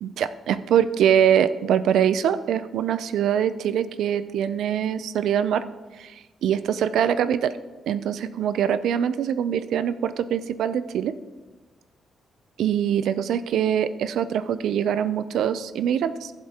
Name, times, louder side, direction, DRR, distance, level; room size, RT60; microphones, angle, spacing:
voice 1, 0.0-5.6 6.0-6.1 6.4-7.5 7.9-11.1 12.6-16.3, right 9 dB, 80° right, 14 dB, 0.5 m, -23 dB
14.0 x 7.8 x 2.9 m, 1.2 s
cardioid pair, 150°, 0 cm